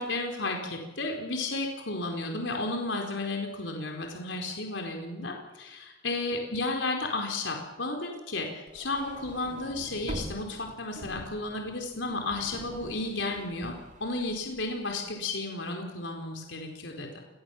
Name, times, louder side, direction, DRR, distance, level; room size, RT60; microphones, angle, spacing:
voice 1, 0.0-17.2, left 2 dB, 75° left, 2 dB, 4.7 m, -33 dB
sound 1, 8.7-15.0, right 1 dB, 40° right, 2.5 m, -44 dB
27.5 x 21.5 x 7.5 m, 1.1 s
head